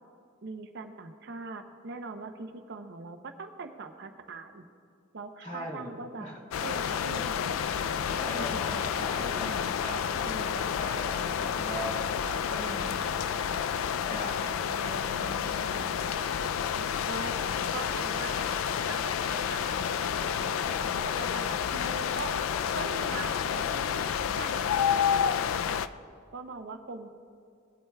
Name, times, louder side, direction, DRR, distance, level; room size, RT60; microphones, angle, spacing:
voice 1, 0.4-4.6 5.1-6.3 6.6-7.5 8.4-8.6 14.6-16.0 17.1-17.4 17.7-18.5 18.8-22.3 22.7-24.1 24.4-25.8 26.3-27.1, right 3 dB, 60° right, 6 dB, 0.7 m, -42 dB
voice 2, 5.4-5.9 6.2-6.4 7.8-13.1 14.0-14.5, equal, 40° left, -2 dB, 2.4 m, -40 dB
sound 1, 6.5-25.9, left 8 dB, 75° left, 0.3 m, -30 dB
18.5 x 8.8 x 2.3 m, 2.4 s
head